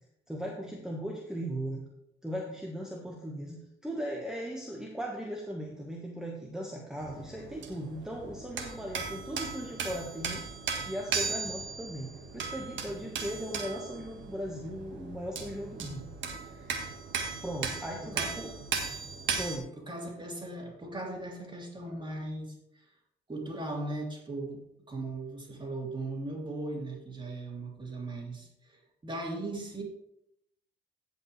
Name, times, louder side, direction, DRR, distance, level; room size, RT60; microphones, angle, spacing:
voice 1, 0.3-1.9 2.2-10.4 10.9-16.1 16.4-16.8 17.4-18.5 19.4-19.7, equal, 5° right, -2 dB, 1.4 m, -38 dB
sound 1, 7.0-19.6, right 5 dB, 70° right, 1.6 m, -37 dB
voice 2, 18.1-18.5 19.9-22.9 23.3-29.8, right 2 dB, 25° right, -1 dB, 3.0 m, -38 dB
16.0 x 5.4 x 3.3 m, 0.81 s
cardioid pair, 90°, 20 cm